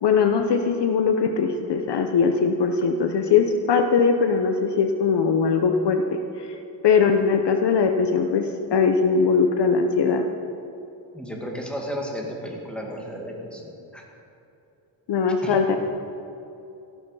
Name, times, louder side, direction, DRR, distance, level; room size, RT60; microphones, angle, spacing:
voice 1, 0.0-6.5 6.8-10.2 15.1-15.8, left 5 dB, 55° left, 6 dB, 1.0 m, -21 dB
voice 2, 11.1-14.0 15.3-15.6, equal, ahead, -1 dB, 2.1 m, -34 dB
13.5 x 12.5 x 5.6 m, 2.8 s
wide cardioid pair, 135°, 49 cm